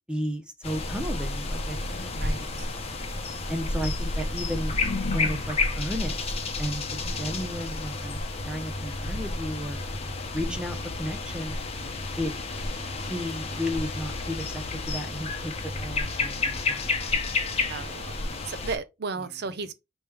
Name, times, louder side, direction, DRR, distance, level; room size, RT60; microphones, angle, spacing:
voice 1, 0.1-2.4 3.5-4.7 5.0-6.3 6.6-8.2 8.4-9.8 10.3-11.6 12.2-12.3 13.1-15.5 15.8-16.8, equal, 5° right, 0.7 m, -33 dB
sound 1, 0.6-18.8, left 3 dB, 35° left, 0.9 m, -31 dB
sound 2, 1.7-2.7 3.3-5.8 6.7-7.8, left 4 dB, 60° left, 0.5 m, -39 dB
voice 2, 2.2-2.7 10.5-10.6 17.7-18.1 18.5-19.7, right 4 dB, 60° right, 0.6 m, -34 dB
5.1 x 3.1 x 3.3 m
head